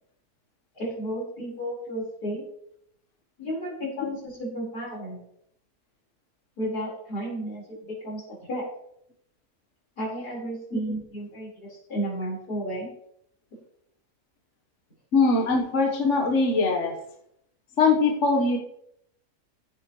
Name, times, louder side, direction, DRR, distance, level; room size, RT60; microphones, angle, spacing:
voice 1, 0.7-2.4 3.4-5.2 6.6-8.6 10.0-12.9, right 1 dB, 85° left, -4 dB, 5.0 m, -33 dB
voice 2, 15.1-16.9 17.8-18.6, left 3 dB, 55° left, 1 dB, 1.5 m, -21 dB
15.0 x 7.7 x 3.1 m, 0.71 s
omnidirectional pair, 1.6 m